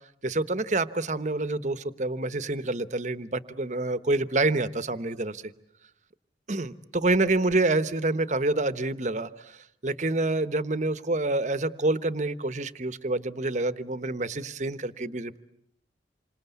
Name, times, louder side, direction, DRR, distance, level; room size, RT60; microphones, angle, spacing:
voice 1, 0.2-5.4 6.5-15.4, right 2 dB, 40° right, 13 dB, 1.0 m, -27 dB
28.0 x 25.5 x 8.2 m, 0.74 s
head